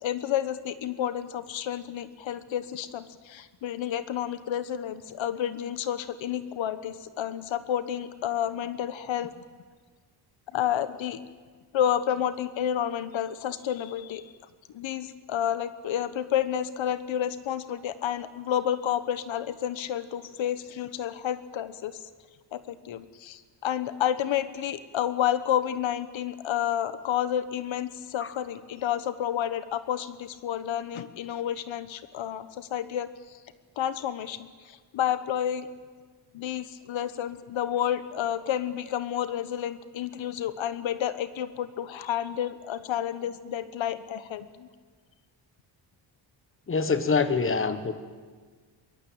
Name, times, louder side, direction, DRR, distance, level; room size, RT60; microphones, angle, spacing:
voice 1, 0.0-9.3 10.5-11.2 11.7-14.2 14.7-22.1 22.5-33.1 33.8-35.7 36.3-44.7, left 10 dB, 80° left, 13 dB, 1.2 m, -30 dB
voice 2, 46.7-47.9, left 4 dB, 25° left, 11 dB, 1.5 m, -25 dB
23.0 x 21.0 x 8.8 m, 1.5 s
wide cardioid pair, 155°, 46 cm